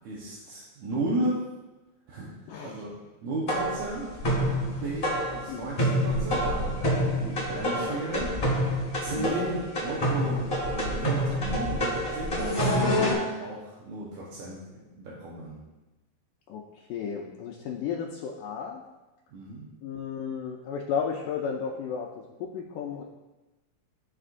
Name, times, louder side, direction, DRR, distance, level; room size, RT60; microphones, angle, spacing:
voice 1, 0.0-1.4 2.1-4.1 4.6-8.3 9.0-14.6 14.9-15.6 19.3-19.7, right 2 dB, 70° right, -6 dB, 2.0 m, -34 dB
voice 2, 2.5-2.8 5.5-5.7 7.7-8.0 9.1-9.4 16.5-16.6 16.9-18.8 19.8-22.1 22.4-23.0, left 7 dB, 80° left, -1 dB, 2.0 m, -33 dB
sound 1, 3.5-13.1, equal, 35° left, 0.9 m, -27 dB
12.5 x 4.3 x 2.5 m, 1.1 s
omnidirectional pair, 4.1 m